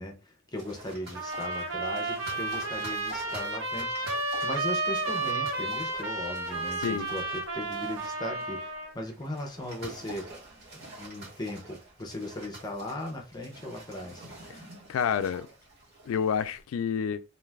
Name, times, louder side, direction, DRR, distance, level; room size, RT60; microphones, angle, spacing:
voice 1, 0.0-10.3 10.7-14.3, left 1 dB, 20° left, 0.5 m, -38 dB
sound 1, 0.5-16.6, right 2 dB, 50° right, 1.3 m, -47 dB
Trumpet - B major, 1.1-8.9, right 2 dB, 80° right, 0.8 m, -32 dB
voice 2, 14.9-15.5 16.1-17.2, left 7 dB, 80° left, 0.3 m, -28 dB
2.5 x 2.3 x 3.3 m
head